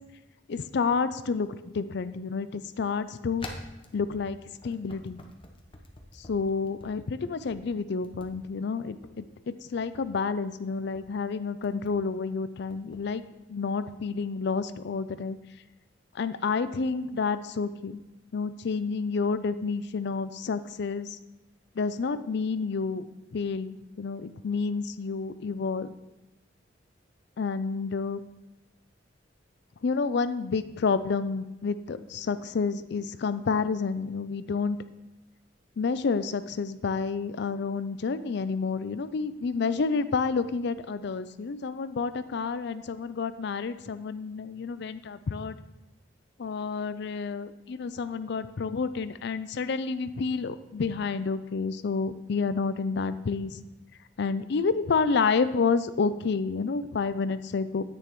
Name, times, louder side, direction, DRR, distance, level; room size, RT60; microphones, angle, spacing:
voice 1, 0.5-1.5 1.7-3.5 3.9-4.4 4.6-5.2 6.3-13.2 13.5-15.4 16.2-18.0 18.3-21.1 21.8-23.0 23.3-23.7 24.0-25.9 27.4-28.2 29.8-34.8 35.8-45.6 46.4-53.6 54.2-57.8, left 4 dB, 65° left, 13 dB, 0.5 m, -29 dB
sound 1, 3.4-6.9 7.3-7.6 8.0-8.3 8.9-9.1 9.7-10.0 10.7-11.0 11.6-12.0 12.7-13.0, left 2 dB, 30° left, 1.0 m, -45 dB
9.9 x 8.9 x 3.1 m, 0.98 s
head